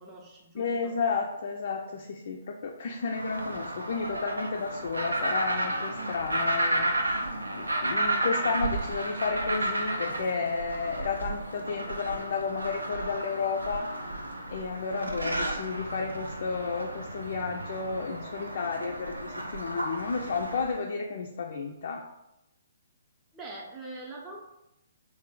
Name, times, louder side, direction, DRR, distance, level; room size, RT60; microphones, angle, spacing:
voice 1, 0.0-0.9 23.3-24.5, right 2 dB, 15° right, -3 dB, 0.6 m, -43 dB
voice 2, 0.5-6.9 7.5-13.9 14.5-22.0, left 4 dB, 55° left, 0 dB, 0.3 m, -32 dB
sound 1, 3.0-20.8, right 1 dB, 85° right, 0.5 m, -32 dB
3.2 x 2.2 x 3.6 m, 0.88 s
figure-of-eight pair, 130°, 0 cm